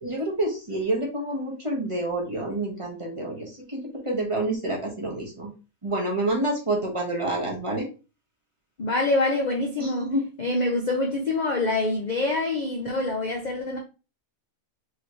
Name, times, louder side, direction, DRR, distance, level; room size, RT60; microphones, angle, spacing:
voice 1, 0.0-5.5 5.8-7.9 9.8-10.2 10.6-10.7, right 1 dB, 25° right, 1.1 m, -28 dB
voice 2, 8.8-13.8, left 2 dB, 45° left, 0.6 m, -26 dB
4.9 x 2.9 x 3.0 m
omnidirectional pair, 1.5 m